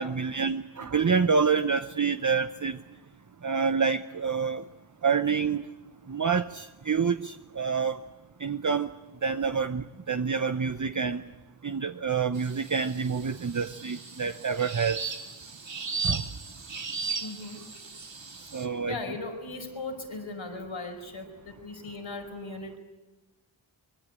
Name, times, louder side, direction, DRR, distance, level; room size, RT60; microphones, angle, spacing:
voice 1, 0.0-2.8 3.4-4.6 5.0-5.6 6.1-8.0 8.4-8.9 9.2-11.2 11.6-15.0 16.0-16.2 18.5-19.0, right 5 dB, 40° right, 9 dB, 0.8 m, -27 dB
sound 1, 12.3-18.6, right 4 dB, 65° right, 2.3 m, -37 dB
voice 2, 17.2-17.6 18.6-22.8, left 3 dB, 80° left, 4 dB, 5.0 m, -38 dB
24.5 x 22.0 x 9.8 m, 1.1 s
wide cardioid pair, 60°, 47 cm